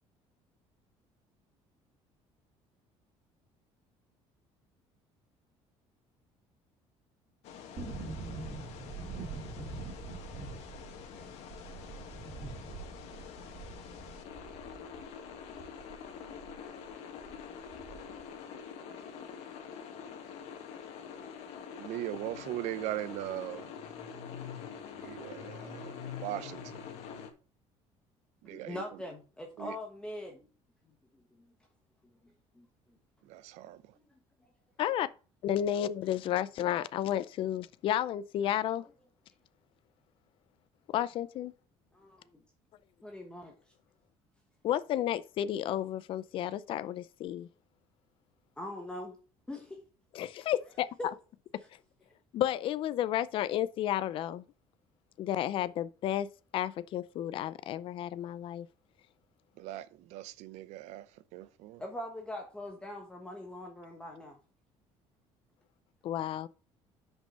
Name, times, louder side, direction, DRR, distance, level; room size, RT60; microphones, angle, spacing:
sound 1, 7.4-27.3, left 7 dB, 65° left, 1.5 m, -46 dB
Uni Folie Wind, 7.8-16.6 16.8-16.9 17.2-18.2 18.5-18.6, right 4 dB, 30° right, 2.9 m, -44 dB
voice 1, 21.8-23.7 25.0-26.8 28.4-28.8 29.6-29.7 33.3-33.8 59.6-61.1 61.3-61.8, right 14 dB, 75° right, 0.6 m, -39 dB
voice 2, 28.4-30.5 31.1-31.5 32.5-32.7 41.9-42.4 43.0-43.5 48.6-49.2 49.5-49.8 51.0-51.1 61.8-64.4, left 1 dB, 10° left, 1.1 m, -42 dB
voice 3, 35.4-38.9 40.9-41.5 44.6-47.5 50.1-50.9 52.3-54.4 55.2-56.3 56.5-58.7 66.0-66.5, left 11 dB, 50° left, 0.5 m, -32 dB
6.0 x 5.5 x 5.4 m
cardioid pair, 150°, 12 cm